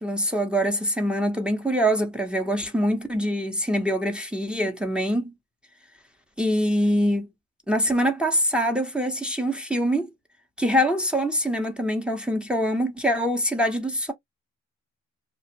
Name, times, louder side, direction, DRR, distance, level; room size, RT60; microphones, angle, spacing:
voice 1, 0.0-5.3 6.4-7.3 7.7-10.1 10.6-14.1, equal, 5° right, 0.7 m, -24 dB
2.4 x 2.0 x 2.7 m
cardioid pair, 90°, 30 cm